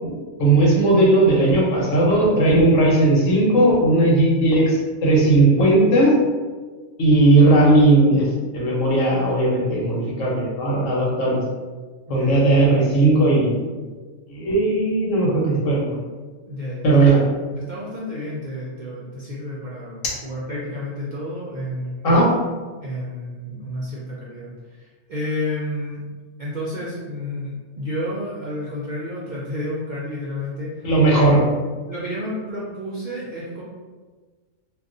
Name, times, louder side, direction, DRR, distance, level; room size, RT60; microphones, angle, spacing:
voice 1, 0.0-6.1 7.0-8.3 8.5-11.4 12.1-13.7 14.3-15.9 16.8-17.2 22.0-22.3 30.8-31.4, right 2 dB, 75° left, -4 dB, 1.2 m, -17 dB
voice 2, 12.1-12.5 16.5-17.2 17.5-22.2 22.8-26.0 26.4-31.1 31.8-33.6, left 1 dB, 60° right, -7 dB, 0.5 m, -31 dB
2.5 x 2.3 x 3.7 m, 1.4 s
omnidirectional pair, 1.4 m